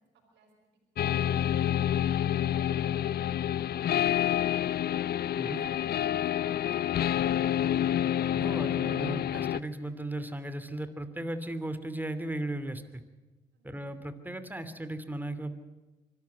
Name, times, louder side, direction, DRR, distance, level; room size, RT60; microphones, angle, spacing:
voice 1, 0.1-1.3 1.9-3.4 4.0-4.6 5.3-7.5 13.5-13.9, right 5 dB, 80° right, 0 dB, 5.2 m, -58 dB
sound 1, 1.0-9.6, left 11 dB, 60° left, 0.6 m, -28 dB
voice 2, 8.3-12.8 13.6-15.5, right 1 dB, 10° right, 11 dB, 2.8 m, -36 dB
24.5 x 13.5 x 9.5 m, 1.2 s
supercardioid pair, 55°, 18 cm